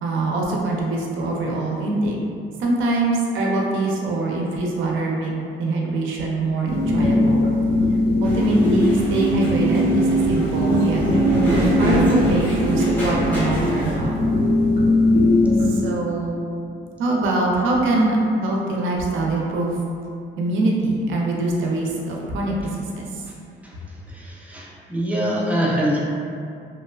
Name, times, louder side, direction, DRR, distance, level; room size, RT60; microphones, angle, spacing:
voice 1, 0.0-2.2 2.6-5.3 5.6-7.5 8.2-11.0 11.8-14.2 15.6-16.4 17.0-19.8 20.4-23.2, right 2 dB, 80° right, -2 dB, 0.5 m, -23 dB
sound 1, 6.6-15.7, left 1 dB, 45° left, 0.7 m, -20 dB
sound 2, 8.2-14.0, equal, 10° left, 1.0 m, -25 dB
voice 2, 24.1-26.0, equal, 5° right, -4 dB, 0.4 m, -24 dB
2.9 x 2.0 x 2.2 m, 2.4 s
cardioid pair, 90°, 20 cm